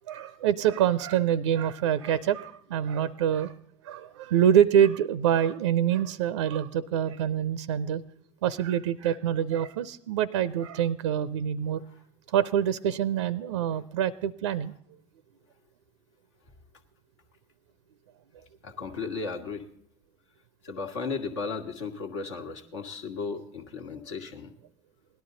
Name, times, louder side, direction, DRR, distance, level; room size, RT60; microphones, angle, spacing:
voice 1, 0.1-3.5 3.8-8.0 8.4-11.8 12.3-14.7, right 9 dB, 70° right, 16 dB, 0.5 m, -25 dB
voice 2, 18.6-19.7 20.6-24.5, left 4 dB, 75° left, 4 dB, 1.4 m, -35 dB
17.5 x 11.5 x 3.8 m, 0.68 s
figure-of-eight pair, 65°, 15 cm